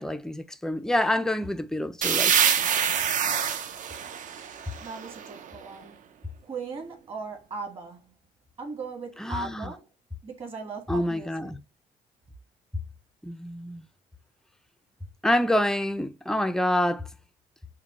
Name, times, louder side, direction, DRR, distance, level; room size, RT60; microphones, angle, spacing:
voice 1, 0.0-2.3 9.2-9.7 10.9-11.6 13.2-13.9 15.2-17.1, left 1 dB, 5° left, 0.4 m, -27 dB
sound 1, 2.0-5.6, right 8 dB, 50° right, 0.5 m, -26 dB
voice 2, 4.7-8.2 8.6-9.9 10.2-11.5, right 4 dB, 35° right, 1.6 m, -38 dB
5.6 x 2.1 x 2.9 m
cardioid pair, 110°, 17 cm